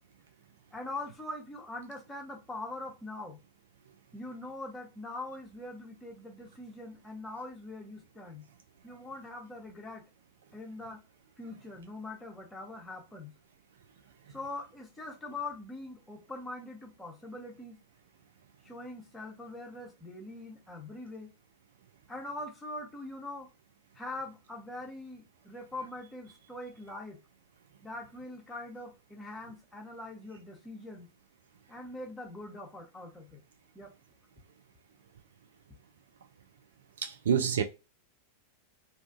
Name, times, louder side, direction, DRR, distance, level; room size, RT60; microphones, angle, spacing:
voice 1, 0.7-3.4 4.1-8.4 8.8-10.0 10.5-11.0 11.4-13.3 14.3-17.8 18.6-21.3 22.1-23.5 23.9-27.2 27.8-31.1 31.7-33.4 33.7-33.9, left 2 dB, 10° left, 0.8 m, -42 dB
voice 2, 37.0-37.6, right 7 dB, 65° right, 0.4 m, -28 dB
2.5 x 2.3 x 2.4 m
figure-of-eight pair, 90°, 0 cm